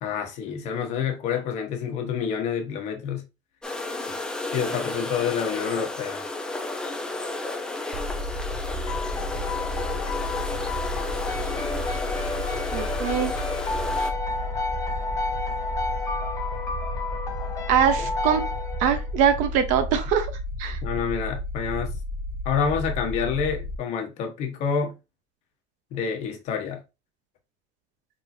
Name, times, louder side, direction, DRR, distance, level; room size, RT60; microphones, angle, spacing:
voice 1, 0.0-3.2 4.5-6.2 20.8-21.9 22.4-25.0 25.9-26.8, left 6 dB, 50° left, 1.1 m, -28 dB
sound 1, 3.6-14.1, left 2 dB, 5° left, 0.4 m, -32 dB
sound 2, 7.9-23.8, left 1 dB, 35° right, 0.7 m, -32 dB
sound 3, 8.9-19.2, left 3 dB, 20° left, 0.8 m, -31 dB
voice 2, 12.7-13.3 17.7-18.4 18.8-20.3 20.6-20.8, right 8 dB, 60° right, 0.9 m, -22 dB
4.2 x 3.6 x 2.6 m
cardioid pair, 170°, 15 cm